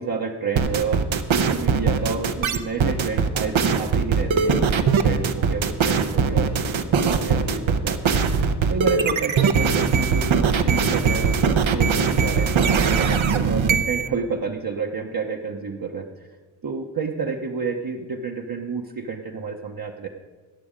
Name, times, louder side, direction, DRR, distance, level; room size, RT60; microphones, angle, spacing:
voice 1, 0.0-16.3 16.6-20.1, right 5 dB, 45° right, 1 dB, 0.9 m, -30 dB
sound 1, 0.6-14.1, right 5 dB, 75° right, 0.9 m, -21 dB
14.5 x 9.4 x 5.1 m, 1.4 s
cardioid pair, 60°, 48 cm